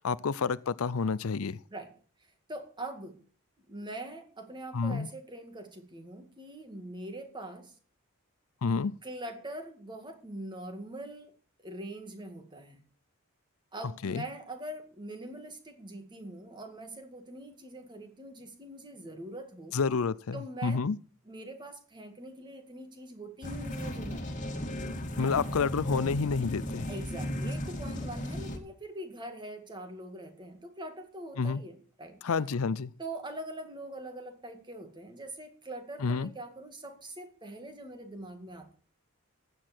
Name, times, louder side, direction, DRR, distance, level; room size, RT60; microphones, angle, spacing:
voice 1, 0.0-1.6 4.7-5.1 8.6-8.9 14.0-14.2 19.7-21.0 25.2-26.9 31.4-31.6 32.2-32.9 36.0-36.3, left 5 dB, 70° left, 0.5 m, -29 dB
voice 2, 2.5-3.2 3.7-7.7 9.0-12.8 13.7-19.8 20.3-20.9 21.3-24.4 25.2-25.4 26.9-32.2 33.0-38.7, right 1 dB, 20° right, 2.0 m, -43 dB
sound 1, 23.4-28.6, left 1 dB, 35° left, 2.1 m, -36 dB
15.0 x 9.6 x 4.5 m
head